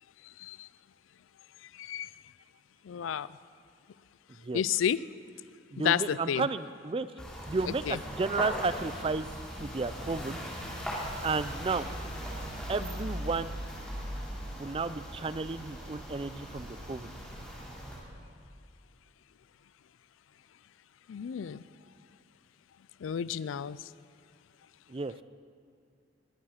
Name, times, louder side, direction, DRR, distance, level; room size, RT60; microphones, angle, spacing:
voice 1, 1.7-2.1 2.9-3.3 4.5-5.0 5.8-6.5 7.9-8.0 21.1-21.6 23.0-23.8, left 8 dB, 90° left, 18 dB, 0.4 m, -31 dB
voice 2, 5.7-7.1 7.5-9.3 9.6-10.4 11.2-11.9 12.7-13.6 14.6-17.1 24.9-25.1, right 4 dB, 30° right, 14 dB, 0.4 m, -32 dB
sound 1, 7.2-18.0, equal, 5° left, 3.4 m, -39 dB
21.0 x 8.9 x 5.8 m, 2.3 s
head